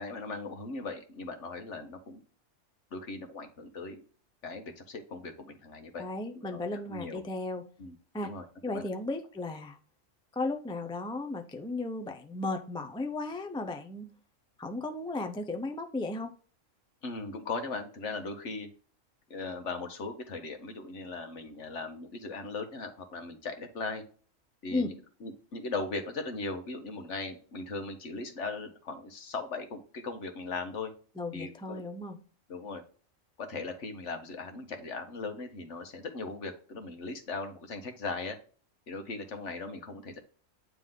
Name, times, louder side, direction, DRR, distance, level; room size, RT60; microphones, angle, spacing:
voice 1, 0.0-2.2 2.9-4.0 4.4-6.0 6.3-7.2 7.8-7.9 8.2-8.5 8.7-8.8 17.0-18.7 19.3-24.0 24.6-30.9 31.3-31.8 32.5-32.8 33.4-38.4 38.9-40.2, left 3 dB, 65° left, 6 dB, 1.4 m, -38 dB
voice 2, 6.0-7.6 8.1-8.3 8.6-9.8 10.3-14.1 14.6-16.3 24.7-24.9 31.2-32.2, left 2 dB, 5° left, 6 dB, 0.3 m, -35 dB
9.2 x 3.4 x 3.7 m, 0.41 s
omnidirectional pair, 1.3 m